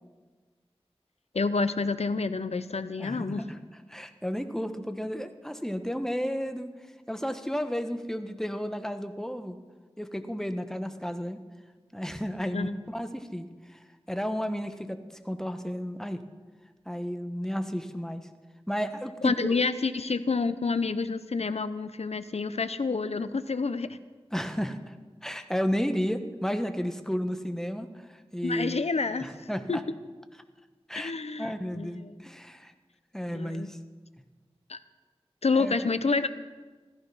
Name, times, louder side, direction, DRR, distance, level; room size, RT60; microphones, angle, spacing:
voice 1, 1.3-3.5 12.5-12.8 19.2-24.0 28.4-29.3 29.7-29.8 30.9-32.2 33.3-33.7 34.7-34.8 35.4-36.3, left 4 dB, 80° left, 12 dB, 0.7 m, -28 dB
voice 2, 3.0-3.6 3.9-6.7 7.1-9.6 10.0-11.4 11.9-13.5 13.7-13.8 14.1-15.0 15.2-16.2 16.9-18.3 18.7-19.5 24.3-24.9 25.2-28.0 28.3-28.8 29.2-29.8 30.9-31.1 31.4-32.7 33.1-33.8 35.6-35.9, equal, 5° left, 8 dB, 1.2 m, -32 dB
15.5 x 14.5 x 5.6 m, 1.3 s
wide cardioid pair, 45°, 11 cm